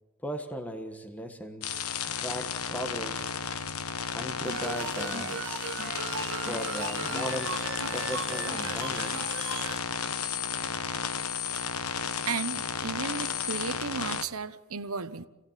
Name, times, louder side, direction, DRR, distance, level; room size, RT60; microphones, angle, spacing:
voice 1, 0.2-1.8 2.2-3.3 4.1-5.4 6.3-7.5 7.9-9.2, equal, 5° left, 5 dB, 1.5 m, -37 dB
sound 1, 1.6-14.2, left 6 dB, 90° left, 1.2 m, -33 dB
sound 2, 4.4-9.8, right 5 dB, 60° right, 2.0 m, -37 dB
voice 2, 12.3-15.3, right 5 dB, 80° right, 12 dB, 1.1 m, -34 dB
27.5 x 17.5 x 7.6 m, 1.1 s
head